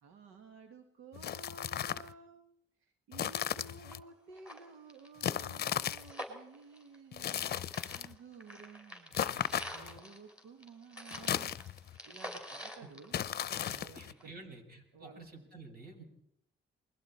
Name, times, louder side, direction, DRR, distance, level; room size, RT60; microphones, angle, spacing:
voice 1, 0.0-2.4 2.8-7.5 7.9-13.2 13.7-14.5 14.9-15.5, right 4 dB, 90° right, 5 dB, 1.8 m, -54 dB
sound 1, 1.1-2.1 3.1-4.0 5.2-6.1 7.1-8.1 9.1-10.0 11.1-12.0 13.1-14.1, left 10 dB, 55° left, 0.7 m, -36 dB
sound 2, 3.9-4.0 4.3-7.5 7.7-13.8 14.2-14.3, equal, 5° right, 4.9 m, -47 dB
voice 2, 13.7-16.0, right 3 dB, 50° right, 3 dB, 6.2 m, -51 dB
28.5 x 21.5 x 4.4 m, 0.74 s
cardioid pair, 90°, 20 cm